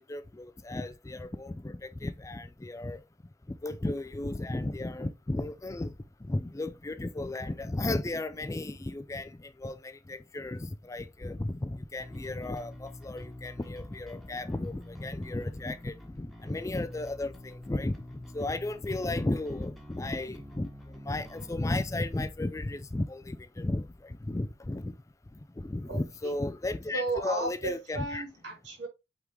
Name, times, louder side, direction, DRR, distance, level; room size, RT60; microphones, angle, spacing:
voice 1, 0.1-3.0 3.6-5.9 6.2-18.0 18.3-20.7 21.1-24.9 25.6-28.2, left 2 dB, 15° left, 0.4 m, -34 dB
Bass guitar, 12.0-21.6, left 1 dB, ahead, 1.3 m, -47 dB
voice 2, 25.9-26.4 26.9-28.9, right 2 dB, 75° right, 3.2 m, -35 dB
8.2 x 3.7 x 3.1 m
head